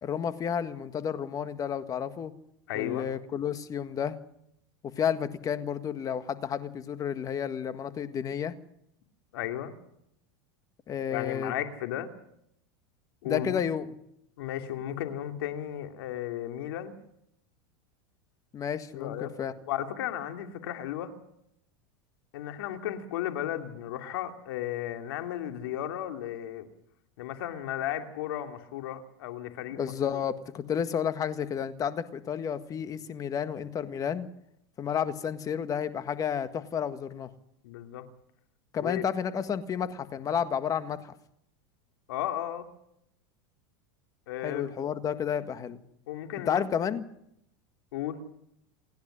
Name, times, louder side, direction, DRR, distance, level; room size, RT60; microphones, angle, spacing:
voice 1, 0.0-2.3 2.7-4.2 5.0-8.5 10.9-11.5 13.3-13.9 18.5-19.5 29.8-34.3 34.8-37.3 38.7-41.1 44.4-45.8 46.5-47.1, left 8 dB, 30° left, 11 dB, 1.7 m, -31 dB
voice 2, 2.7-3.1 9.3-9.7 11.1-12.1 13.2-13.6 14.4-16.9 18.9-19.3 19.7-21.1 22.3-26.7 27.2-30.2 37.6-38.1 38.8-39.0 42.1-42.7 44.3-44.7 46.1-46.6 47.9-48.2, left 11 dB, 80° left, 7 dB, 2.7 m, -34 dB
28.0 x 10.5 x 9.9 m, 0.74 s
supercardioid pair, 130°, 12 cm